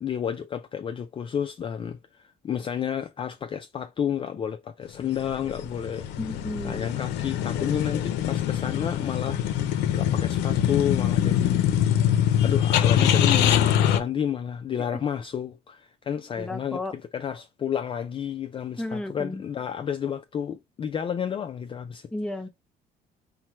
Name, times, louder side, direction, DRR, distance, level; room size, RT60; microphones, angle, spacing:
voice 1, 0.0-6.1 6.6-9.4 9.9-11.7 12.4-16.8 17.1-22.1, left 8 dB, 30° left, 0.4 m, -31 dB
sound 1, 5.1-14.0, left 10 dB, 85° left, 0.6 m, -23 dB
voice 2, 6.2-6.9 14.9-15.0 16.4-16.9 18.8-19.4 22.1-22.5, left 2 dB, 5° left, 0.7 m, -33 dB
4.5 x 2.1 x 4.3 m
cardioid pair, 110°, 17 cm